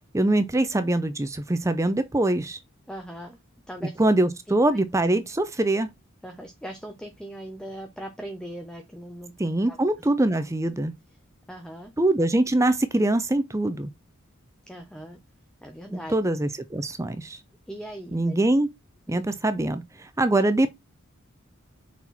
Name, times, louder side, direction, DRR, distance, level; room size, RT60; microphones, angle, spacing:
voice 1, 0.1-2.6 4.0-5.9 9.4-10.9 12.0-13.9 15.9-17.4 18.1-18.7 19.1-20.7, right 1 dB, 15° right, 0.5 m, -23 dB
voice 2, 2.9-3.4 3.7-4.0 4.7-4.8 6.2-9.3 9.7-9.9 11.5-11.9 14.7-15.2 15.6-16.2 17.7-18.4 19.1-19.2, right 1 dB, 5° left, 0.9 m, -39 dB
6.1 x 4.5 x 4.1 m
head